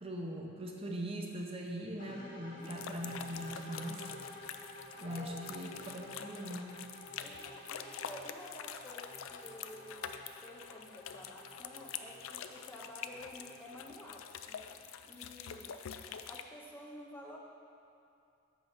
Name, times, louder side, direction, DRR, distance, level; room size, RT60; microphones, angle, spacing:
voice 1, 0.0-4.0 5.0-6.8, right 1 dB, 30° right, 0 dB, 0.7 m, -41 dB
sound 1, 2.0-14.0, left 1 dB, 65° left, 1.8 m, -51 dB
voice 2, 2.1-2.7 5.1-5.4 7.2-14.8 15.0-15.7 16.3-17.4, left 1 dB, 10° left, -2 dB, 0.6 m, -51 dB
sound 2, 2.6-16.4, left 8 dB, 90° left, 0.4 m, -46 dB
5.7 x 5.6 x 6.9 m, 2.6 s
head